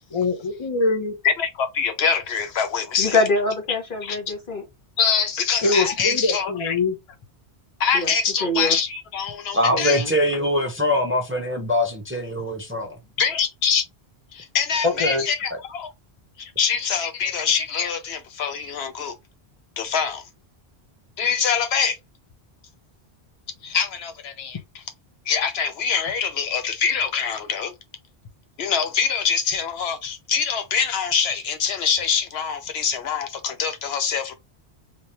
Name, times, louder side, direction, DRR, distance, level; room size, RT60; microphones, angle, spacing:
voice 1, 0.1-1.2 5.6-7.0 14.8-15.2, left 3 dB, 30° left, 0.9 m, -23 dB
voice 2, 1.2-3.2 4.0-4.2 5.0-6.7 7.8-10.0 13.2-13.8 14.3-15.9 16.6-19.1 19.8-20.2 21.2-22.0 23.6-24.6 25.3-27.7 28.6-34.3, left 6 dB, 75° left, 0.8 m, -24 dB
voice 3, 3.0-4.6 7.9-8.1 8.4-8.8 9.7-10.1, left 2 dB, 55° left, 1.5 m, -24 dB
voice 4, 9.5-12.9 15.5-15.6, left 1 dB, 15° right, 0.7 m, -23 dB
3.4 x 3.1 x 2.8 m
omnidirectional pair, 1.1 m